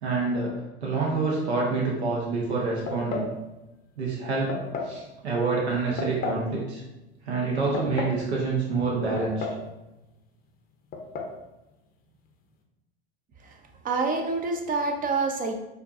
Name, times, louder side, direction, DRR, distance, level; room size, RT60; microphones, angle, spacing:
voice 1, 0.0-3.3 4.0-6.8 7.2-9.5, right 3 dB, 85° right, -3 dB, 0.9 m, -27 dB
sound 1, 2.9-3.4 4.5-5.0 6.0-6.5 7.5-8.2 9.2-9.7 9.9-10.0 10.9-11.3, left 4 dB, 30° left, 0.6 m, -32 dB
voice 2, 13.8-15.6, right 3 dB, 25° right, 4 dB, 0.6 m, -27 dB
4.4 x 2.6 x 2.5 m, 1.0 s
hypercardioid pair, 95°, 32 cm